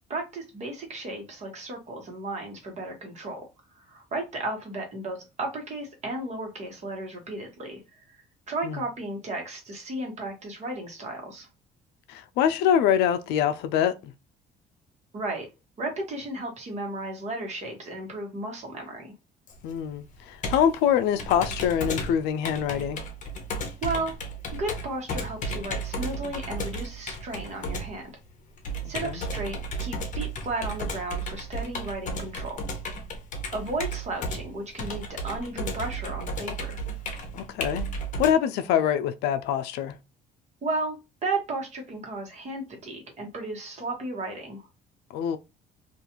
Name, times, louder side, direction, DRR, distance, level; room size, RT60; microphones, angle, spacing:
voice 1, 0.1-3.4 3.7-8.2 8.5-11.5 15.1-15.5 15.8-19.1 23.8-24.1 24.5-28.1 28.9-32.7 33.5-36.8 40.6-44.7, right 2 dB, 40° right, 1.2 m, -34 dB
voice 2, 12.1-14.1 19.6-23.0 28.8-29.2 37.3-37.9 38.2-40.0 45.1-45.4, left 9 dB, 85° left, 0.4 m, -25 dB
Computer keyboard, 19.5-38.3, right 1 dB, 50° left, 0.7 m, -34 dB
2.5 x 2.3 x 2.9 m
cardioid pair, 110°, 17 cm